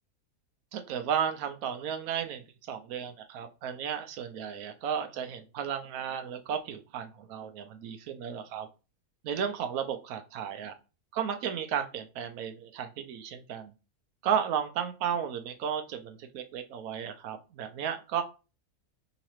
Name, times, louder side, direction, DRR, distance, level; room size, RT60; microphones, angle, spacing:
voice 1, 0.7-8.7 9.2-10.7 11.1-13.7 14.2-18.2, right 8 dB, 75° right, 7 dB, 1.0 m, -34 dB
3.9 x 2.8 x 3.0 m, 0.31 s
omnidirectional pair, 1.6 m